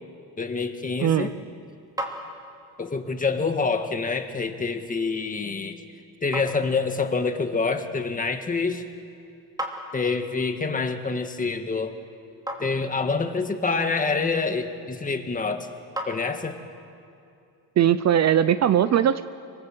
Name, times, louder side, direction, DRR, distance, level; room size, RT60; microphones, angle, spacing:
voice 1, 0.4-1.3 2.8-5.8 6.2-8.8 9.9-12.0 12.6-15.7 16.1-16.6, left 4 dB, 20° left, 6 dB, 1.7 m, -26 dB
voice 2, 1.0-1.3 17.8-19.3, right 10 dB, 40° right, 13 dB, 0.7 m, -20 dB
sound 1, 1.6-16.8, right 1 dB, 10° right, 2.9 m, -42 dB
26.0 x 24.5 x 7.8 m, 2.6 s
cardioid pair, 145°, 40 cm